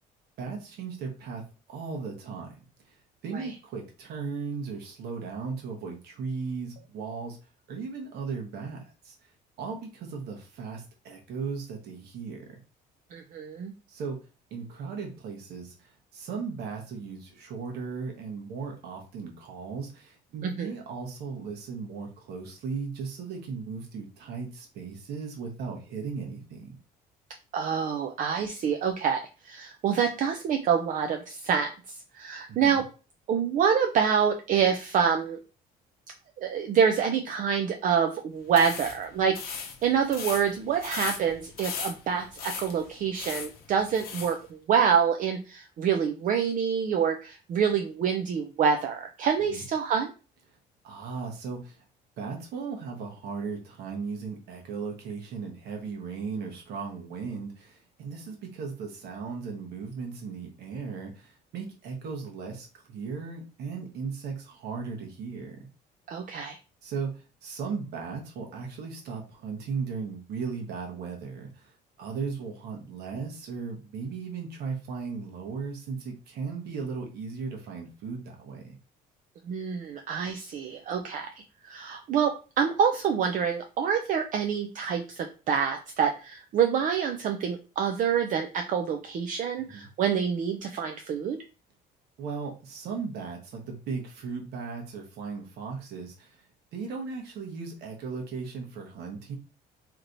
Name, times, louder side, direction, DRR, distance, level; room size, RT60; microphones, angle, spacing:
voice 1, 0.4-1.4 1.7-3.0 3.2-7.4 7.7-9.1 9.6-12.4 13.9-14.2 14.5-26.8 32.5-32.8 49.5-49.6 50.8-51.8 52.2-65.6 66.8-71.7 72.0-78.8 89.6-89.9 92.2-96.4 96.7-99.4, right 5 dB, 70° right, 1 dB, 1.1 m, -37 dB
voice 2, 13.1-13.7 20.4-20.7 27.5-32.8 33.3-35.4 36.4-50.1 66.1-66.6 79.5-81.3 81.6-91.4, right 7 dB, 50° right, 5 dB, 0.4 m, -27 dB
sound 1, 38.5-44.4, left 6 dB, 65° left, 0.7 m, -38 dB
3.2 x 2.9 x 2.6 m, 0.34 s
cardioid pair, 110°, 17 cm